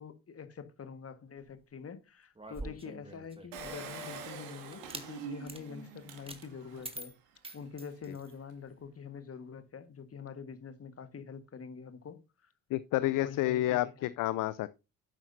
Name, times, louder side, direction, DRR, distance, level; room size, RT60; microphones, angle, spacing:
voice 1, 0.0-7.1 7.5-12.5 13.0-14.1, left 6 dB, 30° left, 1.7 m, -46 dB
sound 1, 2.3-3.9 4.7-5.1 5.4-5.6 6.3-6.4 6.8-8.4, right 2 dB, 10° right, 2.1 m, -45 dB
Engine, 3.5-7.0 7.5-7.6 7.7-7.8, right 5 dB, 70° right, 2.2 m, -45 dB
voice 2, 12.7-14.7, left 15 dB, 45° left, 0.6 m, -30 dB
11.0 x 8.9 x 2.7 m
figure-of-eight pair, 50°, 44 cm